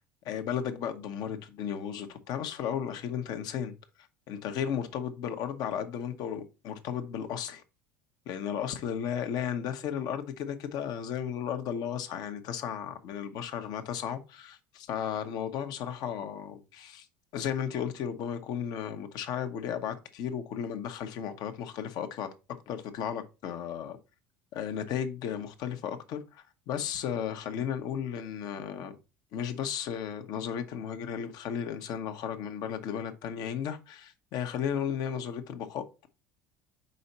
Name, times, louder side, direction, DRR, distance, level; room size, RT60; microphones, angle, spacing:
voice 1, 0.2-3.7 4.3-7.6 8.3-17.1 17.3-22.3 22.7-24.0 24.5-29.0 29.3-36.1, left 8 dB, 60° left, 1.0 m, -34 dB
5.4 x 4.4 x 4.1 m
hypercardioid pair, 75°, 8 cm